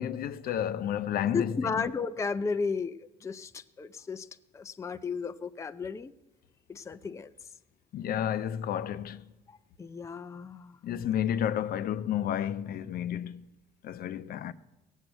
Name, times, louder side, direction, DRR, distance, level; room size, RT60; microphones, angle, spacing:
voice 1, 0.0-1.7 7.9-9.2 10.8-13.4 13.8-14.5, left 10 dB, 60° left, 0.6 m, -31 dB
voice 2, 1.3-4.3 4.5-6.1 6.7-7.3 9.5-10.8, left 5 dB, 15° left, 0.5 m, -34 dB
17.0 x 7.4 x 7.9 m
cardioid pair, 110°, 17 cm